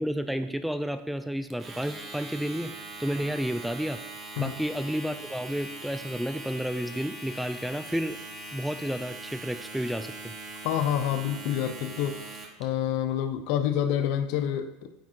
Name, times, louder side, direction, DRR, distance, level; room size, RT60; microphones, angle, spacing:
voice 1, 0.0-2.7 3.0-4.0 4.4-8.2 8.5-10.3, equal, ahead, 10 dB, 0.4 m, -31 dB
Domestic sounds home sounds, 1.5-12.6, right 2 dB, 30° right, 1.2 m, -41 dB
voice 2, 10.6-12.3 12.6-14.7, left 10 dB, 65° left, 10 dB, 0.6 m, -27 dB
9.1 x 3.5 x 4.5 m, 0.98 s
supercardioid pair, 115°, 0 cm